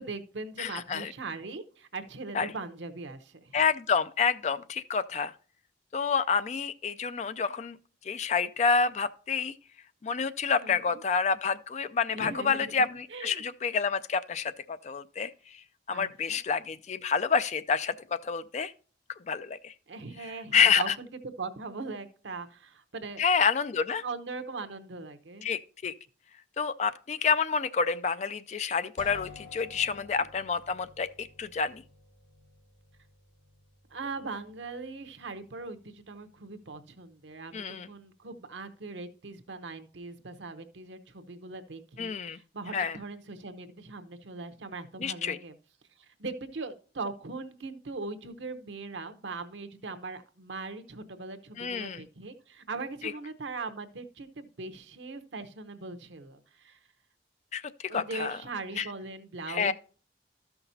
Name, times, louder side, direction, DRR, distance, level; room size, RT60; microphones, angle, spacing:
voice 1, 0.0-3.6 10.6-11.0 12.1-13.4 15.9-16.4 19.9-21.1 21.4-23.2 24.0-25.5 29.8-30.2 33.9-45.5 46.0-56.8 57.9-59.7, right 3 dB, 85° right, 0.8 m, -40 dB
voice 2, 0.6-1.1 2.3-2.5 3.5-5.3 5.9-7.8 8.1-9.5 10.0-15.3 15.9-18.7 19.3-19.7 20.5-20.9 23.2-24.0 25.4-25.9 26.6-31.8 37.5-37.9 42.0-42.4 42.7-43.0 45.0-45.4 51.6-52.0 53.0-53.1 57.5-58.4 58.8-58.9 59.5-59.7, left 6 dB, 40° left, 0.3 m, -28 dB
sound 1, 29.0-38.7, left 3 dB, 80° left, 1.7 m, -54 dB
13.0 x 5.8 x 2.7 m
head